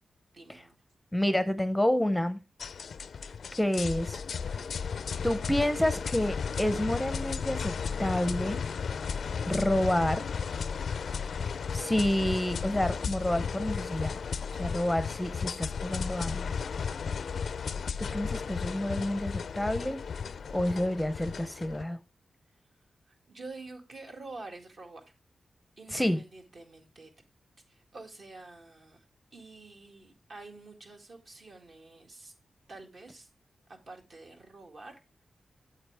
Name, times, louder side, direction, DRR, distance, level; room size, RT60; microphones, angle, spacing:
voice 1, 0.3-0.8 23.1-25.1 25.8-27.1 27.7-29.0 29.3-32.3 32.7-33.3 33.7-35.0, right 3 dB, 60° right, 2.1 m, -48 dB
voice 2, 1.1-2.4 3.6-4.2 5.2-7.7 8.0-8.6 9.4-10.2 11.7-14.2 14.5-16.5 18.0-20.0 20.5-22.0 25.9-26.2, left 1 dB, 5° left, 0.6 m, -29 dB
sound 1, 2.6-21.8, left 6 dB, 75° left, 0.4 m, -34 dB
8.7 x 7.7 x 3.4 m
wide cardioid pair, 115°, 0 cm